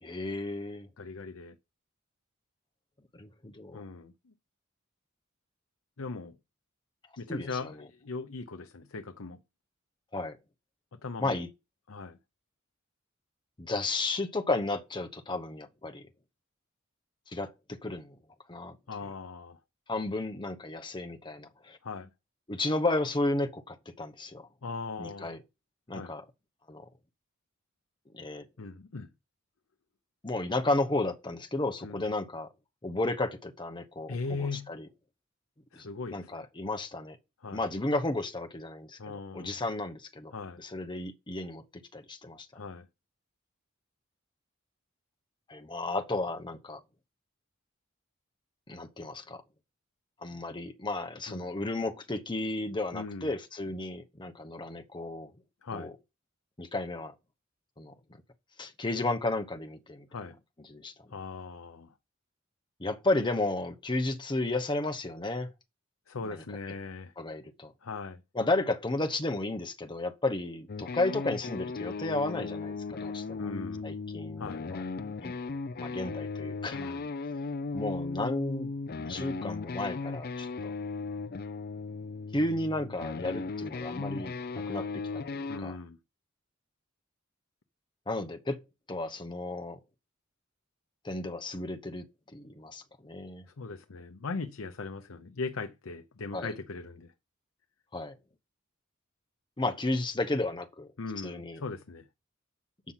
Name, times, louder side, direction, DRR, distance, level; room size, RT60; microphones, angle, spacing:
voice 1, 0.0-0.9 3.1-3.8 7.3-7.7 10.1-10.4 11.2-11.5 13.6-16.1 17.3-18.2 18.5-18.8 19.9-21.8 22.5-24.5 25.0-25.4 25.9-26.2 26.7-26.8 28.1-28.5 30.2-32.5 32.8-34.9 35.8-37.2 37.5-40.3 40.6-42.5 45.5-46.8 48.7-49.4 50.2-55.3 55.7-55.9 56.6-57.1 57.8-57.9 58.6-60.1 60.7-61.1 62.8-65.5 66.3-66.4 67.2-67.7 68.3-73.5 73.8-74.8 75.2-75.4 75.8-77.0 77.7-80.7 82.3-85.8 88.1-88.6 88.9-89.8 91.0-92.1 92.3-93.4 96.3-96.5 97.9-98.2 99.6-100.9 101.2-101.6, left 2 dB, 25° left, 0.9 m, -33 dB
voice 2, 1.0-1.6 3.7-4.3 6.0-6.4 7.2-9.4 10.9-11.4 11.9-12.2 18.9-19.6 21.8-22.1 24.6-25.3 25.9-26.1 28.6-29.1 31.8-32.0 34.1-34.7 35.7-36.5 37.4-37.6 39.0-39.6 40.3-40.6 42.5-42.9 51.3-51.5 52.9-53.3 55.6-55.9 60.1-60.4 61.1-61.9 66.1-67.1 67.8-68.2 73.4-73.9 74.4-74.6 76.7-77.1 85.5-86.0 93.6-97.1 101.0-102.1, left 4 dB, 90° left, 0.7 m, -39 dB
sound 1, 70.7-85.6, left 4 dB, 50° left, 0.5 m, -37 dB
8.4 x 6.0 x 5.7 m
head